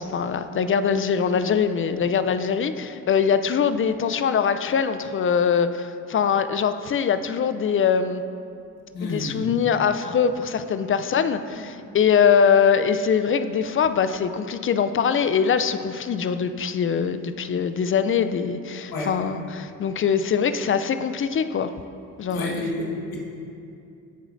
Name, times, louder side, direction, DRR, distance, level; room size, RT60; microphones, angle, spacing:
voice 1, 0.0-8.2 9.0-21.7 22.2-22.6, left 7 dB, 35° left, 11 dB, 0.4 m, -22 dB
voice 2, 8.9-9.4 11.8-11.9 18.9-19.1 22.3-23.2, left 2 dB, 70° left, -3 dB, 1.4 m, -30 dB
14.0 x 4.9 x 2.6 m, 2.6 s
supercardioid pair, 55°, 38 cm